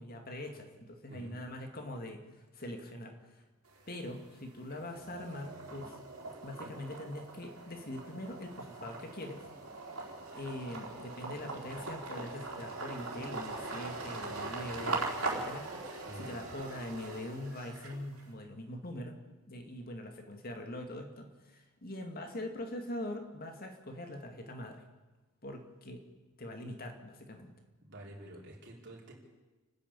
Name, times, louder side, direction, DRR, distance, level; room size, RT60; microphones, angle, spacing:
voice 1, 0.0-3.4 3.9-6.0 6.4-9.5 10.3-19.2 19.5-24.8 25.4-26.0 26.4-27.5, left 1 dB, 45° left, 4 dB, 2.4 m, -43 dB
sound 1, 3.7-4.3 4.7-18.2, right 3 dB, 80° right, 4.4 m, -41 dB
voice 2, 15.8-16.4 27.8-29.1, right 1 dB, 55° right, -2 dB, 5.0 m, -49 dB
30.0 x 10.5 x 8.6 m, 1.2 s
head